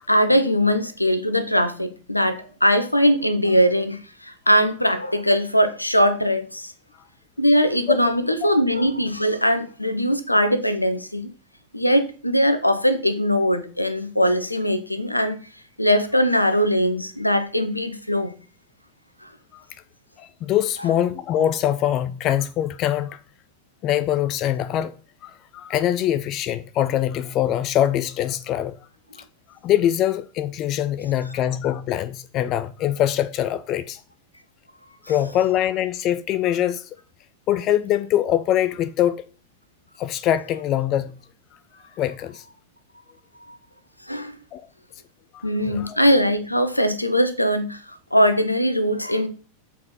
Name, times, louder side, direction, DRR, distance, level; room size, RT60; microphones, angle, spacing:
voice 1, 0.0-6.7 7.4-11.3 11.7-15.4 15.8-18.3 19.2-19.3 43.5-43.6 44.1-44.4 45.4-49.3, equal, 85° left, 0.7 m, -21 dB
voice 2, 20.2-23.2 23.8-24.9 25.2-28.7 29.6-34.0 35.1-36.9 37.5-39.2 40.0-41.1 42.0-42.4 44.5-44.7 45.3-46.0, left 11 dB, 35° left, 0.4 m, -23 dB
7.4 x 4.2 x 4.2 m
figure-of-eight pair, 90°, 0 cm